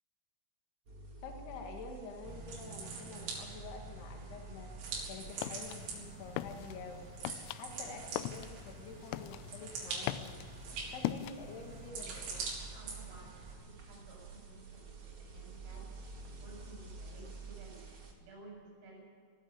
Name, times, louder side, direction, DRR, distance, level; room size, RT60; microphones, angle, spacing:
sound 1, 0.9-18.1, right 4 dB, 35° right, 2.2 m, -51 dB
voice 1, 1.2-4.7 5.1-7.1 7.5-10.4 10.9-12.5, left 4 dB, 60° left, 2 dB, 3.4 m, -48 dB
sound 2, 2.2-13.5, right 4 dB, 90° right, 6.6 m, -45 dB
sound 3, 4.9-11.9, left 14 dB, 85° left, 3.1 m, -42 dB
voice 2, 12.7-15.8 16.2-19.0, right 2 dB, 65° right, -2 dB, 9.8 m, -55 dB
19.5 x 14.5 x 9.7 m, 2.1 s
omnidirectional pair, 5.9 m